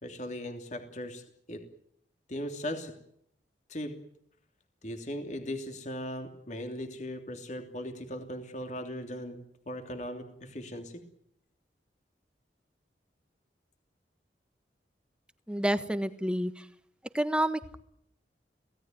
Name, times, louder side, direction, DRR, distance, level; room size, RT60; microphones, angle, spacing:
voice 1, 0.0-1.2 1.5-1.6 2.3-2.9 3.7-3.9 4.8-9.4 9.7-11.0, equal, 45° left, 5 dB, 3.2 m, -38 dB
voice 2, 15.5-16.7 17.1-17.8, right 1 dB, 5° right, 10 dB, 1.3 m, -29 dB
26.5 x 17.5 x 9.3 m, 0.71 s
head